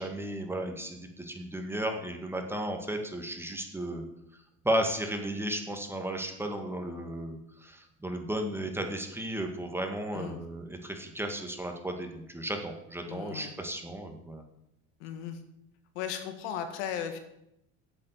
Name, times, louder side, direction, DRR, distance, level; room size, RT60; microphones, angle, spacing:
voice 1, 0.0-4.1 4.6-14.4, right 1 dB, 5° right, 4 dB, 2.0 m, -34 dB
voice 2, 13.1-13.5 15.0-15.4 16.0-17.2, left 8 dB, 80° left, 7 dB, 1.8 m, -36 dB
8.5 x 7.7 x 8.2 m, 0.81 s
supercardioid pair, 100°, 34 cm